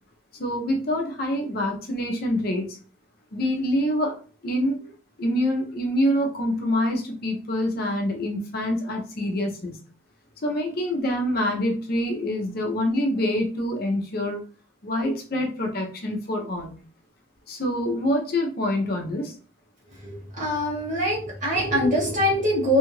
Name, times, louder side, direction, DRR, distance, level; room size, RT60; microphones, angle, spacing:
voice 1, 0.4-2.8 3.3-4.1 4.4-4.9 5.2-9.8 10.4-14.4 14.8-16.8 17.5-19.3, left 1 dB, 45° left, 1 dB, 0.6 m, -26 dB
voice 2, 20.0-22.8, equal, 40° right, -4 dB, 1.4 m, -23 dB
2.7 x 2.3 x 3.1 m, 0.40 s
head